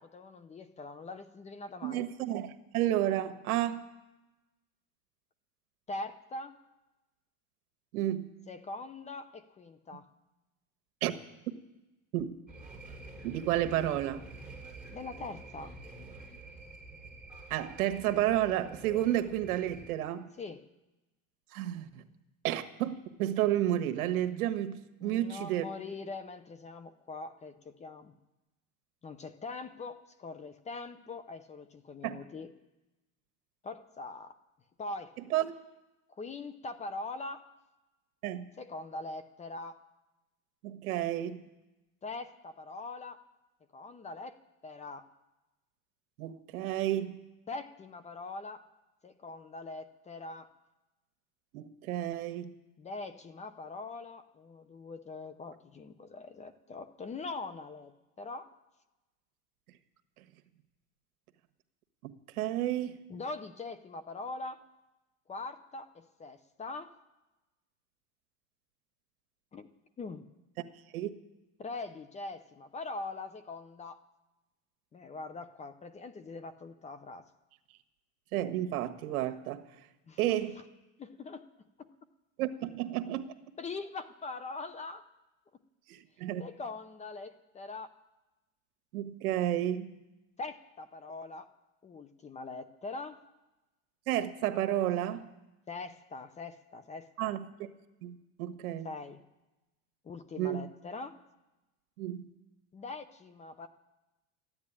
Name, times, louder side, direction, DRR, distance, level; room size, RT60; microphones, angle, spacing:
voice 1, 0.0-2.0 5.9-6.5 8.5-10.1 14.9-15.8 20.4-20.6 25.0-28.1 29.0-32.5 33.6-34.3 34.8-35.1 36.1-37.4 38.6-39.8 42.0-43.2 43.7-44.4 44.6-45.0 47.5-48.6 49.0-50.5 52.8-58.5 63.1-64.6 65.3-66.9 69.5-69.7 70.0-70.3 71.6-74.0 74.9-77.2 80.1-80.2 81.0-81.5 81.8-81.9 83.6-85.0 86.4-87.9 90.4-91.5 91.8-93.2 95.7-97.3 98.8-99.2 100.0-101.1 102.7-103.7, left 3 dB, 15° left, 12 dB, 0.6 m, -42 dB
voice 2, 1.8-3.9 7.9-8.3 11.0-11.1 12.1-12.3 13.2-14.2 17.5-20.3 21.5-22.0 22.4-25.6 32.0-32.2 35.3-35.5 38.2-38.4 40.6-41.4 46.2-47.2 51.5-52.5 62.0-62.1 62.4-63.0 70.9-71.1 78.3-79.6 80.2-80.6 82.4-83.3 85.9-86.4 88.9-89.9 94.1-95.3 97.2-97.7 98.0-98.9 100.4-100.7 102.0-102.2, right 12 dB, 85° right, 10 dB, 1.4 m, -31 dB
sound 1, 12.5-19.9, right 2 dB, ahead, 3.7 m, -48 dB
14.0 x 9.7 x 9.9 m, 1.0 s
supercardioid pair, 140°, 43 cm